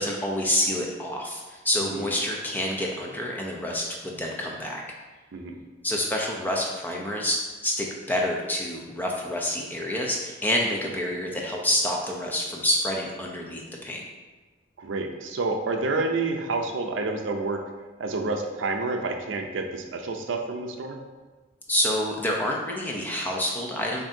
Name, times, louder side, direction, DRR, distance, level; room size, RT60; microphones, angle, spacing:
voice 1, 0.0-4.8 5.8-14.0 21.7-24.0, left 1 dB, 10° left, -1 dB, 0.5 m, -28 dB
voice 2, 14.8-17.6 18.0-21.0, right 3 dB, 85° right, 4 dB, 0.5 m, -29 dB
7.1 x 2.6 x 2.6 m, 1.3 s
head